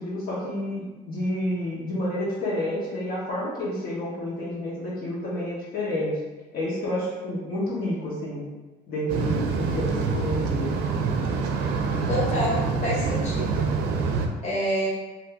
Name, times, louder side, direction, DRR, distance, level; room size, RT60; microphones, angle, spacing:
voice 1, 0.0-6.1 6.5-8.4 8.9-10.8, left 1 dB, 60° left, -8 dB, 1.1 m, -29 dB
sound 1, 9.1-14.3, right 4 dB, 85° right, 0.4 m, -26 dB
voice 2, 12.1-13.6 14.4-14.9, equal, 40° left, -6 dB, 1.2 m, -27 dB
2.7 x 2.6 x 3.4 m, 1.2 s
cardioid pair, 110°, 17 cm